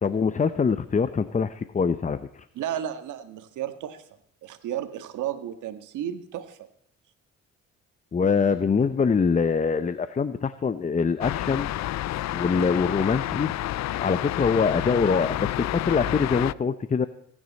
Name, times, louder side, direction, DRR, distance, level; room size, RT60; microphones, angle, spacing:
voice 1, 0.0-2.5 8.1-11.7 12.3-13.5 14.0-17.1, left 5 dB, 25° left, 13 dB, 0.7 m, -24 dB
voice 2, 2.5-4.0 4.4-6.6 12.5-12.8, right 10 dB, 85° right, 9 dB, 1.6 m, -33 dB
sound 1, 11.2-16.5, left 14 dB, 65° left, 0.5 m, -29 dB
24.5 x 9.9 x 4.1 m, 0.70 s
cardioid pair, 90°, 30 cm